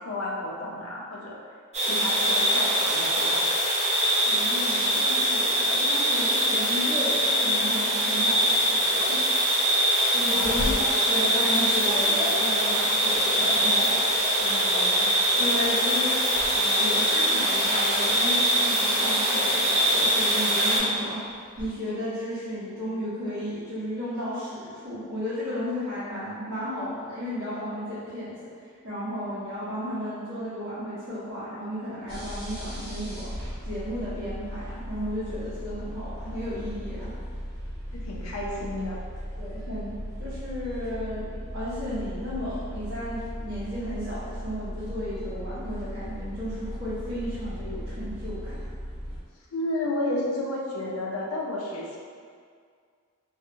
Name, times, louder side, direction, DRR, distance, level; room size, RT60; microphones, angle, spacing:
voice 1, 0.0-1.4 1.8-3.5 10.3-10.9 37.9-39.0 49.5-52.0, left 1 dB, 70° left, -2 dB, 0.5 m, -32 dB
sound 1, 1.7-20.8, equal, 30° right, 0.5 m, -23 dB
voice 2, 4.2-9.2 10.1-10.8 11.1-13.9 14.4-15.1 15.3-21.3 21.6-28.4 28.8-33.3 33.6-37.1 39.4-39.9 40.2-48.6, left 1 dB, 75° right, -17 dB, 1.0 m, -34 dB
sound 2, 10.4-15.8 16.2-16.6 16.9-19.0 19.5-21.7, equal, 20° left, 0.6 m, -38 dB
sound 3, 32.1-49.2, equal, 45° right, 1.1 m, -37 dB
2.6 x 2.1 x 2.6 m, 2.1 s
head